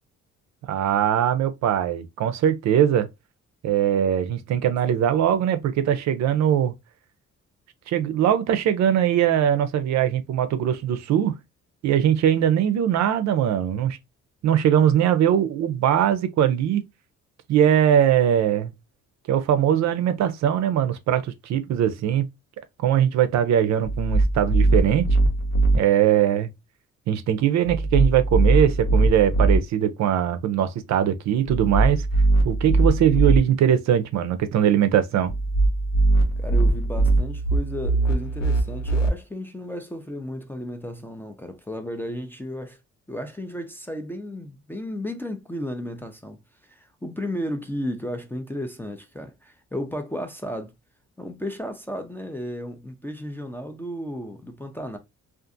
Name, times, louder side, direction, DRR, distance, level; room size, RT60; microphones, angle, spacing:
voice 1, 0.7-3.1 3.6-6.7 7.9-11.3 11.8-14.0 14.4-16.8 17.5-18.7 19.3-22.3 22.8-25.1 25.7-26.5 27.1-32.1 32.4-35.3, right 10 dB, 65° right, 0.5 m, -21 dB
sound 1, 23.8-25.8 27.7-29.6 31.5-33.4 35.3-39.1, right 2 dB, 65° left, 0.7 m, -21 dB
voice 2, 36.4-42.8 43.1-50.7 51.2-55.0, equal, 5° left, 0.3 m, -34 dB
2.5 x 2.4 x 2.4 m
cardioid pair, 90°, 30 cm